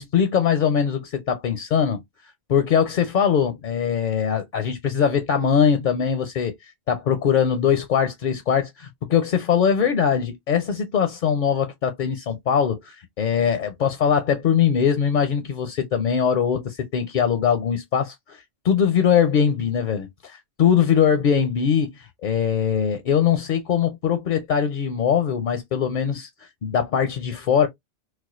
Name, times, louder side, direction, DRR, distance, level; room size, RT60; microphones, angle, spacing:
voice 1, 0.0-2.0 2.5-6.5 6.9-27.7, left 7 dB, 55° left, 0.6 m, -21 dB
4.2 x 2.3 x 2.4 m
omnidirectional pair, 1.1 m